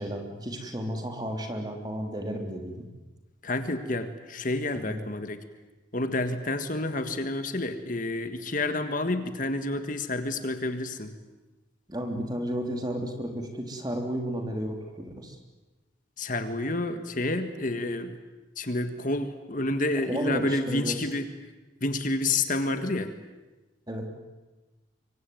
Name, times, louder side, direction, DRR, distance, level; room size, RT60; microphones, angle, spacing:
voice 1, 0.0-2.8 4.7-5.0 11.9-15.4 20.0-21.0 23.9-24.1, equal, 20° right, 4 dB, 3.2 m, -33 dB
voice 2, 3.4-5.4 5.9-11.1 16.2-18.1 18.6-21.3 21.8-23.1, left 2 dB, 40° left, 9 dB, 1.7 m, -29 dB
25.5 x 24.0 x 9.3 m, 1.1 s
head